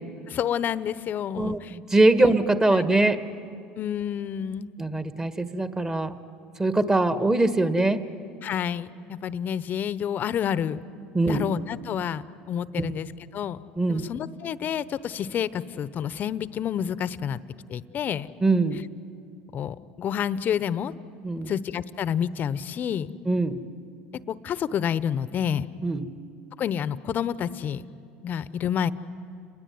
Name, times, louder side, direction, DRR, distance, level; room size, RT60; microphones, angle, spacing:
voice 1, 0.3-1.8 2.2-2.3 2.7-2.9 3.8-4.7 8.4-10.8 11.2-13.1 13.3-13.6 13.9-17.4 17.7-18.3 19.5-20.9 21.5-23.1 24.3-25.6 26.6-27.8 28.2-28.9, left 9 dB, 45° left, 15 dB, 1.0 m, -29 dB
voice 2, 1.4-3.2 4.8-6.2 6.6-8.0 11.1-11.4 12.8-12.9 13.8-14.0 18.4-18.8 21.2-21.5 23.2-23.6 25.8-26.0, right 2 dB, 15° right, 9 dB, 1.8 m, -22 dB
30.0 x 21.0 x 9.5 m, 2.4 s
hypercardioid pair, 85°, 4 cm